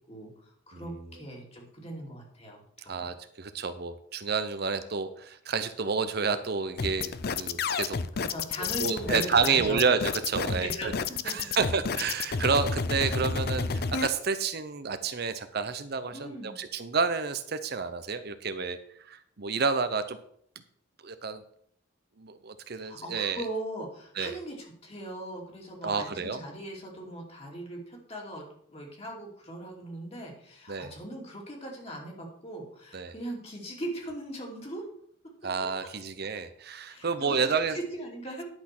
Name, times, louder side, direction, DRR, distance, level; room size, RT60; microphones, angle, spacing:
voice 1, 0.1-3.0 8.2-9.8 10.5-11.5 16.1-16.6 22.7-28.4 28.7-34.8 36.9-38.4, right 1 dB, 35° left, -1 dB, 2.7 m, -39 dB
voice 2, 2.9-8.0 8.6-10.9 11.3-18.8 19.1-20.2 21.0-21.4 22.2-23.4 24.2-24.4 25.8-26.4 30.7-30.9 32.9-33.1 35.4-37.8, right 5 dB, 55° right, 10 dB, 0.7 m, -30 dB
sound 1, 6.8-14.1, left 5 dB, 55° left, 0.6 m, -30 dB
10.5 x 6.1 x 6.0 m, 0.65 s
head